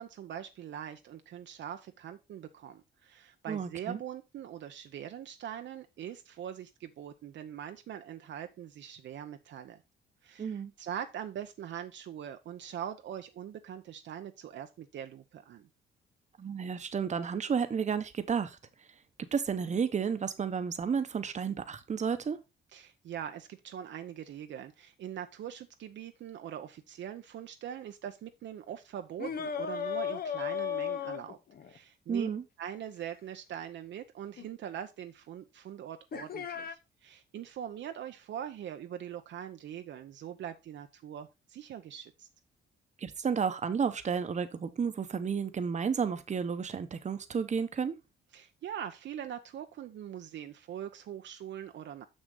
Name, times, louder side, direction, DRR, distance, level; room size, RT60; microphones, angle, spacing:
voice 1, 0.0-9.8 10.2-15.7 22.7-31.4 31.7-32.3 32.6-42.3 48.3-52.1, right 10 dB, 65° right, 0.8 m, -42 dB
voice 2, 3.5-4.0 10.4-10.7 16.4-18.6 19.2-22.4 32.1-32.4 43.0-48.0, right 6 dB, 35° right, 1.0 m, -32 dB
sound 1, 29.2-31.8 34.4-34.5 36.1-36.7, left 8 dB, 50° left, 0.8 m, -35 dB
6.3 x 6.2 x 3.8 m
cardioid pair, 90°, 20 cm